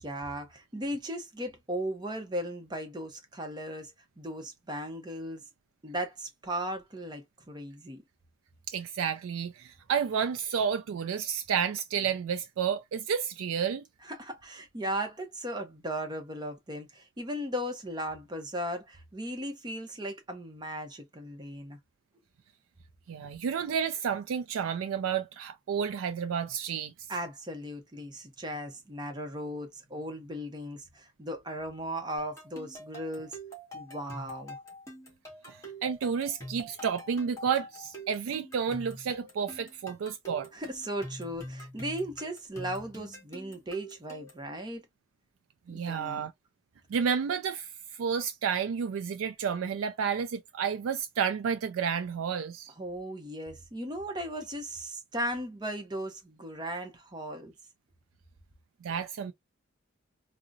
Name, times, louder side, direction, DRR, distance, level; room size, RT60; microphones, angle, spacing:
voice 1, 0.0-5.4 5.8-8.0 14.0-21.8 27.1-33.4 33.7-34.6 40.5-44.9 45.7-46.3 52.8-57.5, equal, 20° right, 0.7 m, -37 dB
voice 2, 8.7-13.8 23.1-26.9 35.5-40.5 45.7-46.3 46.9-47.7 48.0-52.7 58.8-59.3, right 7 dB, 90° right, 0.3 m, -31 dB
sound 1, 32.2-44.5, equal, 15° left, 1.5 m, -45 dB
3.7 x 2.0 x 2.5 m
head